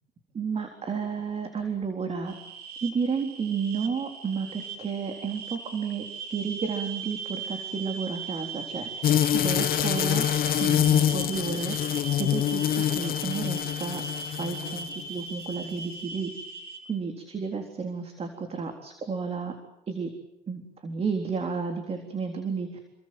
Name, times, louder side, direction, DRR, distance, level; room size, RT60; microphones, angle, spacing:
voice 1, 0.3-2.3 2.8-6.0 6.3-9.1 9.3-10.3 10.6-11.8 12.2-14.0 14.3-16.3 16.9-19.5 19.9-20.1 20.5-22.8, right 5 dB, 35° right, 4 dB, 3.9 m, -32 dB
sound 1, 2.3-16.8, right 4 dB, 70° right, 5.6 m, -39 dB
sound 2, 9.0-15.0, left 11 dB, 60° left, 0.9 m, -25 dB
28.5 x 23.0 x 7.8 m, 0.90 s
cardioid pair, 110°, 17 cm